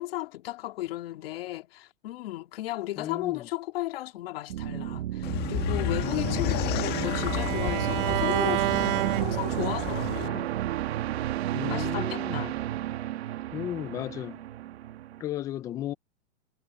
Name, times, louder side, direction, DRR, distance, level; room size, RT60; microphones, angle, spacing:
voice 1, 0.0-10.5 11.7-12.6, left 16 dB, 65° left, 2.7 m, -35 dB
voice 2, 3.0-3.5 6.0-6.5 11.5-12.5 13.5-14.4 15.2-15.9, left 12 dB, 10° left, 0.3 m, -35 dB
sound 1, 4.5-15.2, right 13 dB, 80° right, 1.2 m, -32 dB
sound 2, 5.2-10.3, left 17 dB, 30° left, 1.5 m, -32 dB
Bowed string instrument, 5.7-9.9, right 17 dB, 55° right, 1.1 m, -31 dB
supercardioid pair, 150°, 32 cm